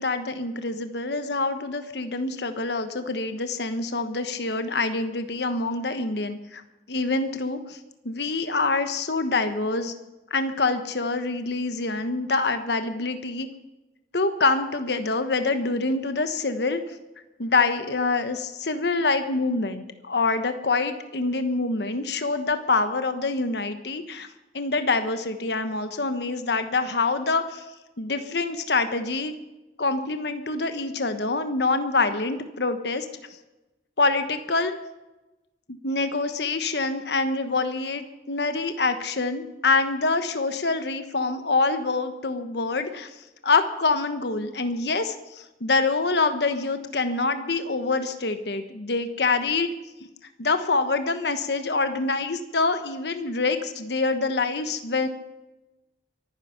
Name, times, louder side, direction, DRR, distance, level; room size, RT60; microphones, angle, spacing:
voice 1, 0.0-6.6 6.9-7.8 8.0-9.9 10.3-13.5 14.1-16.8 17.4-24.3 24.5-27.6 28.0-29.3 29.8-33.1 34.0-34.7 35.7-43.1 43.4-49.7 50.4-55.1, left 3 dB, 70° left, 9 dB, 1.2 m, -25 dB
23.5 x 10.0 x 5.9 m, 1.0 s
head